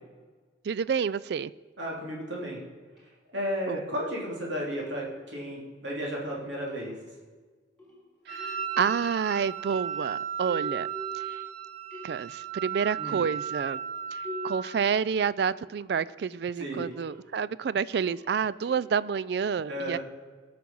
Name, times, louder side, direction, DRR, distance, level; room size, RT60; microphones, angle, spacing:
voice 1, 0.6-1.5 3.7-3.8 8.3-10.9 11.1-11.4 12.0-13.8 14.1-20.0, right 6 dB, 55° right, 19 dB, 0.3 m, -29 dB
voice 2, 1.8-2.6 3.3-6.9 13.0-13.2 16.6-16.9 19.7-20.0, equal, 75° right, -3 dB, 3.3 m, -33 dB
sound 1, 3.0-3.1 4.8-5.4 6.7-7.3 7.8-9.3 9.7-11.6 11.9-12.5 13.2-16.1 16.7-17.3 17.9-19.0, left 1 dB, ahead, 3.5 m, -45 dB
Wind instrument woodwind instrument, 8.3-14.9, right 10 dB, 40° right, 1.4 m, -35 dB
18.0 x 6.0 x 5.4 m, 1.4 s
head